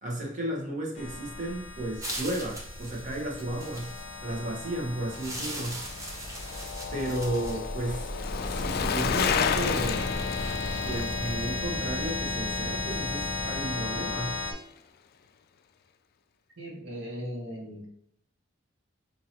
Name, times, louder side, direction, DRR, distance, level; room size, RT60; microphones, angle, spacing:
voice 1, 0.0-3.9 4.2-5.8 6.9-8.1 8.4-10.1 10.8-14.4, right 1 dB, 40° right, -1 dB, 1.2 m, -33 dB
sound 1, 1.0-14.5, left 3 dB, 35° left, 0.9 m, -34 dB
sound 2, 2.0-4.2 5.1-8.1, right 1 dB, 15° right, 0.8 m, -40 dB
Bicycle, 5.4-13.8 14.1-14.2, left 7 dB, 50° left, 0.3 m, -33 dB
voice 2, 16.6-17.9, equal, 75° right, -3 dB, 1.3 m, -38 dB
5.7 x 2.8 x 2.9 m, 0.71 s
head